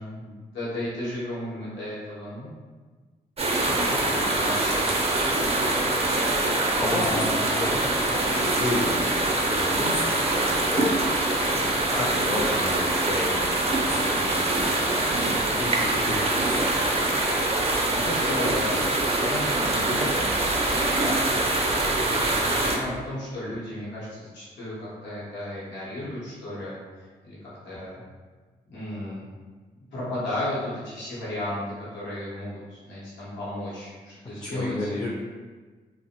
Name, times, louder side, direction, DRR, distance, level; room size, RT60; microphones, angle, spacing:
voice 1, 0.0-2.5 3.7-4.9 6.7-7.7 11.9-12.1 15.0-15.6 16.0-16.2 17.6-20.3 21.0-22.2 22.6-28.0 28.7-29.3 29.9-34.9, left 1 dB, 90° left, -9 dB, 0.8 m, -34 dB
sound 1, 3.4-22.8, right 2 dB, 35° right, 0.5 m, -24 dB
voice 2, 3.9-4.3 5.4-5.9 6.8-7.7 8.1-11.0 11.4-14.9 15.5-16.7 34.4-35.1, left 2 dB, 25° left, -3 dB, 0.4 m, -33 dB
2.5 x 2.0 x 2.8 m, 1.4 s
supercardioid pair, 45°, 18 cm